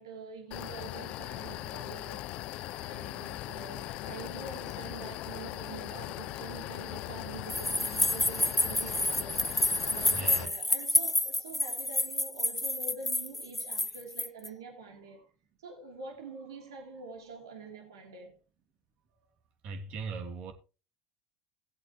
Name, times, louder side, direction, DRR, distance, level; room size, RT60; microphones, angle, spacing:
voice 1, 0.0-2.4 2.7-9.6 9.9-15.3 15.6-18.4, right 4 dB, 85° right, 3.0 m, -46 dB
sound 1, 0.5-10.5, left 16 dB, 55° left, 0.5 m, -39 dB
sound 2, 7.5-14.5, left 2 dB, 5° left, 0.4 m, -29 dB
voice 2, 10.1-10.6 19.6-20.5, right 4 dB, 55° right, 2.9 m, -39 dB
17.5 x 8.0 x 3.0 m
hypercardioid pair, 80°, 2 cm